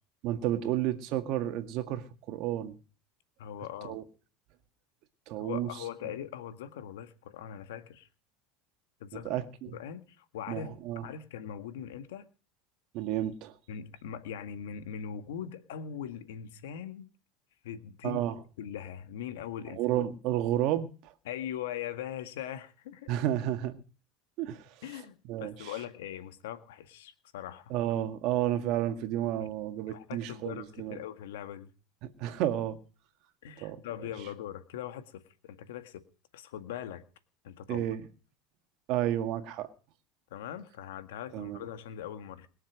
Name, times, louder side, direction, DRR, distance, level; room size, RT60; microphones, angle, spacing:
voice 1, 0.2-2.8 3.8-4.0 5.3-5.7 9.1-9.8 10.5-11.0 12.9-13.5 18.0-18.4 19.7-21.1 23.1-23.8 24.4-24.7 25.3-25.7 27.7-31.0 32.0-32.8 33.6-33.8 37.7-38.1 38.9-39.7 41.3-41.6, right 12 dB, 60° right, 1.9 m, -31 dB
voice 2, 3.4-4.0 5.4-8.1 9.0-9.4 9.7-12.3 13.7-17.1 17.6-18.2 18.6-19.8 21.3-23.2 24.8-27.7 29.9-31.7 33.4-36.0 36.3-37.0 37.4-37.8 40.3-42.5, left 9 dB, 90° left, 1.8 m, -41 dB
21.5 x 7.2 x 6.2 m
supercardioid pair, 125°, 0 cm